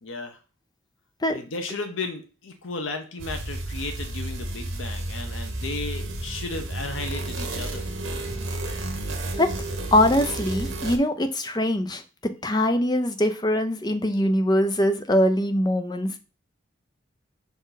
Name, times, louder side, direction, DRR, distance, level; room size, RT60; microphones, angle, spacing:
voice 1, 0.0-0.4 1.3-7.9, left 3 dB, 80° left, 5 dB, 1.0 m, -34 dB
sound 1, 3.2-11.0, right 1 dB, 85° right, 1.3 m, -31 dB
voice 2, 9.9-16.2, left 1 dB, 20° left, 8 dB, 0.6 m, -22 dB
6.0 x 4.2 x 4.0 m, 0.34 s
head